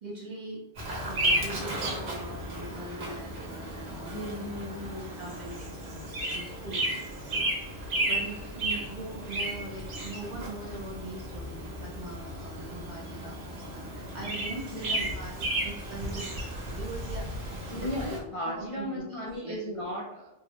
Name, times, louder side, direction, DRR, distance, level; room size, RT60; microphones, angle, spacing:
voice 1, 0.0-0.6 1.0-4.3 5.2-15.4 15.6-16.4 16.6-18.2 18.4-19.6, right 2 dB, 45° right, -4 dB, 0.9 m, -42 dB
Bird vocalization bird call bird song, 0.8-18.2, right 1 dB, 70° right, 1.1 m, -34 dB
voice 2, 4.1-5.1 14.7-15.1 17.7-20.3, left 1 dB, 45° left, -4 dB, 0.4 m, -36 dB
3.6 x 2.1 x 2.8 m, 0.86 s
omnidirectional pair, 1.1 m